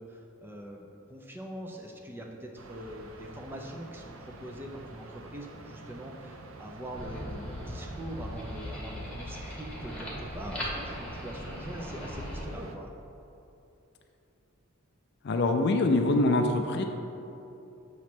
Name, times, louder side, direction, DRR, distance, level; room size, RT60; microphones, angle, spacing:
voice 1, 0.0-12.9, equal, 10° right, 0 dB, 0.4 m, -43 dB
sound 1, 2.6-12.8, right 2 dB, 70° right, 0.5 m, -47 dB
sound 2, 6.9-12.4, equal, 5° left, 1.1 m, -39 dB
voice 2, 15.2-16.8, left 2 dB, 50° left, 5 dB, 0.4 m, -24 dB
7.1 x 3.1 x 5.9 m, 2.9 s
head